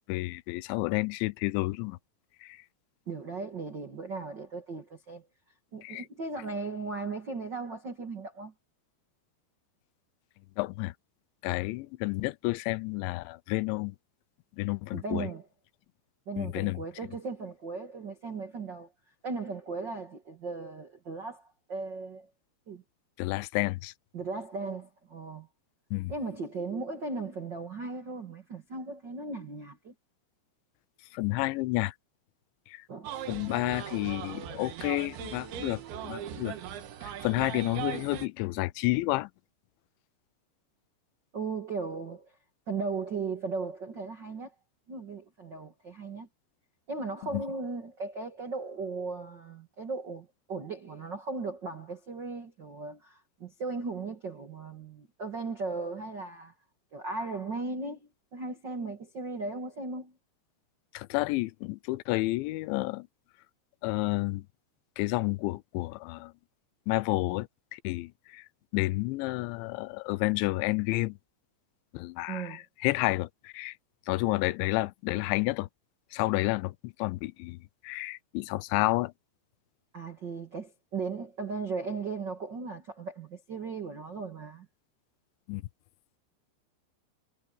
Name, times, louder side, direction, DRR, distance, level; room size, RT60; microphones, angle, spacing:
voice 1, 0.1-2.0 2.4-2.6 5.8-6.1 10.6-10.9 11.4-14.0 14.6-15.3 16.4-16.8 23.2-23.9 25.9-26.1 31.1-31.9 32.7-32.8 33.3-36.6 37.0-39.3 47.3-47.4 60.9-63.1 63.8-64.5 65.0-66.3 66.9-68.5 68.7-71.2 71.9-73.7 74.1-75.7 76.1-77.6 77.8-79.1 85.5-85.6, left 21 dB, 90° left, 3.0 m, -30 dB
voice 2, 3.1-5.3 5.7-8.5 14.9-15.4 16.3-18.9 19.2-22.3 22.7-22.8 24.1-25.5 26.1-29.9 32.9-33.1 41.3-42.3 42.7-44.5 44.9-46.3 46.9-56.5 56.9-60.1 72.3-72.6 79.9-84.7, right 4 dB, 60° right, 1.1 m, -37 dB
sound 1, 33.0-38.3, right 10 dB, 80° right, 4.1 m, -39 dB
omnidirectional pair, 5.2 m